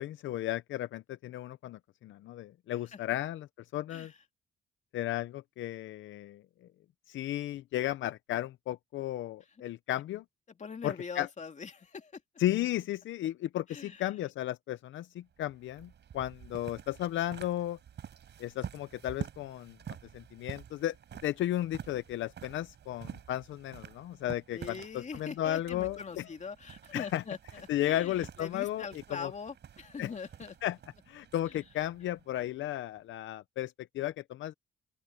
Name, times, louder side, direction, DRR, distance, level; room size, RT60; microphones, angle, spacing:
voice 1, 0.0-3.5 3.7-4.1 4.9-6.4 7.1-10.2 10.8-11.3 12.4-17.8 18.4-19.8 20.1-21.0 21.2-26.3 26.9-27.2 27.7-29.3 30.0-30.1 30.6-30.8 31.1-34.5, left 13 dB, 75° left, 0.7 m, -34 dB
voice 2, 10.5-12.2 13.7-14.1 24.5-30.6 31.5-31.6, left 5 dB, 35° left, 2.5 m, -43 dB
sound 1, 15.3-33.0, right 9 dB, 60° right, 7.0 m, -48 dB
open air
cardioid pair, 90°, 20 cm